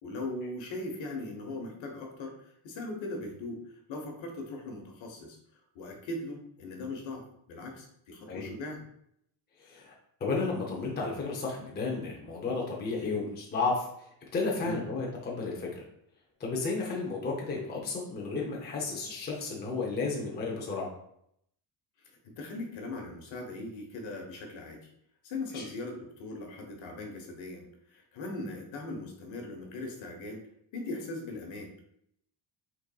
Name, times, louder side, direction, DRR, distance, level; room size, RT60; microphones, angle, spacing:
voice 1, 0.0-5.4 5.7-8.8 14.6-14.8 22.0-24.8 25.2-31.7, left 2 dB, 65° left, 3 dB, 1.2 m, -39 dB
voice 2, 9.6-9.9 10.2-14.1 14.3-15.8 16.4-20.9 25.5-25.6, left 3 dB, 20° left, -2 dB, 0.6 m, -33 dB
5.6 x 4.0 x 2.3 m, 0.72 s
cardioid pair, 175°, 49 cm